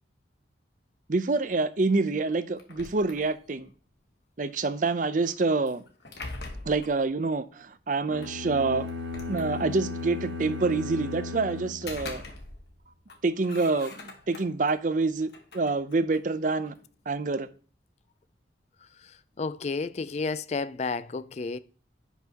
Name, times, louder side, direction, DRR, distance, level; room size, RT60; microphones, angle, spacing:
voice 1, 1.1-3.7 4.4-5.8 6.7-8.9 9.3-12.2 13.2-16.7 17.1-17.5, right 3 dB, 45° right, 0.6 m, -27 dB
sound 1, 2.6-3.7 5.7-7.0 8.2-8.3 8.9-10.0 11.6-12.8 13.1-14.7 15.2-16.8, left 2 dB, 65° left, 1.4 m, -43 dB
sound 2, 8.1-12.5, left 3 dB, 90° right, 1.3 m, -36 dB
voice 2, 19.4-21.6, left 4 dB, 35° left, 0.4 m, -31 dB
10.5 x 5.5 x 2.9 m
head